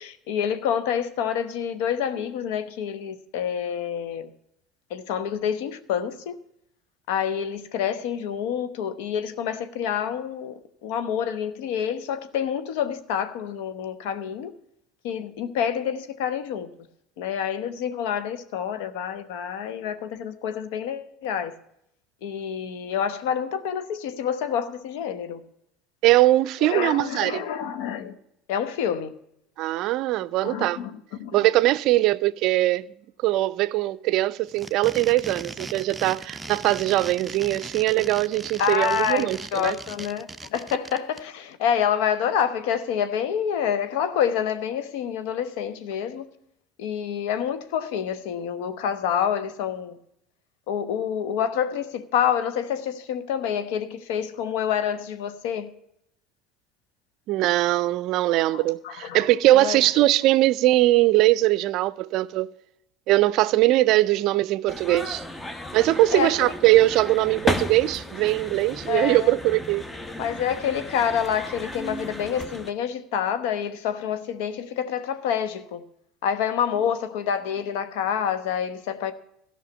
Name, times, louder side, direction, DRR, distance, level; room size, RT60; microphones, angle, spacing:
voice 1, 0.0-4.3 4.9-6.3 7.1-14.5 15.0-16.7 17.2-21.6 22.2-25.4 26.6-28.2 28.5-29.1 30.4-31.4 38.6-46.3 46.8-50.0 50.7-55.7 58.8-59.8 66.1-66.5 68.9-69.3 70.2-75.8 76.2-79.1, left 8 dB, 75° left, 0.9 m, -27 dB
voice 2, 26.0-27.4 29.6-30.8 31.3-32.8 33.2-39.8 57.3-62.5 63.1-65.2 65.7-69.8, right 16 dB, 65° right, 0.4 m, -21 dB
sound 1, 34.5-41.2, right 3 dB, 15° right, 0.6 m, -38 dB
sound 2, 64.7-72.7, left 1 dB, 15° left, 1.0 m, -34 dB
13.5 x 5.7 x 8.2 m
hypercardioid pair, 85°, 0 cm